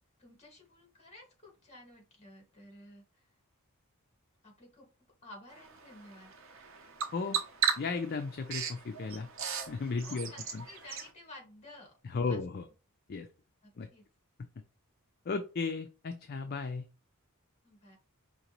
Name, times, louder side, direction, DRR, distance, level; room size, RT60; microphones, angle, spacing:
voice 1, 0.2-3.3 4.4-4.9 5.2-6.3 10.0-11.9 12.3-12.4 13.6-14.0 17.6-18.0, left 1 dB, 30° left, 1 dB, 1.8 m, -53 dB
Bird vocalization bird call bird song, 5.5-11.1, right 7 dB, 60° right, 0.8 m, -37 dB
voice 2, 7.8-9.3 9.7-10.6 12.0-12.6 13.1-13.3 13.8-13.9 15.3-16.9, left 4 dB, 45° left, 7 dB, 0.4 m, -35 dB
5.1 x 2.9 x 3.0 m, 0.33 s
head